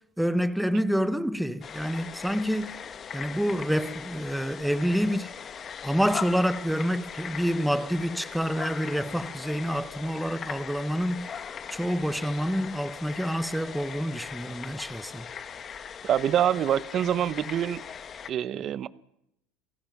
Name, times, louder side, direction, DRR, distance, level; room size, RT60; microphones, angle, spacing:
voice 1, 0.2-2.8 3.1-5.3 5.8-11.3 11.7-15.3, equal, ahead, 0.9 m, -28 dB
sound 1, 1.6-18.3, left 7 dB, 30° left, 1.2 m, -40 dB
voice 2, 16.0-17.8 18.3-18.9, right 10 dB, 40° right, 0.9 m, -25 dB
28.0 x 17.5 x 6.0 m
supercardioid pair, 125°, 0 cm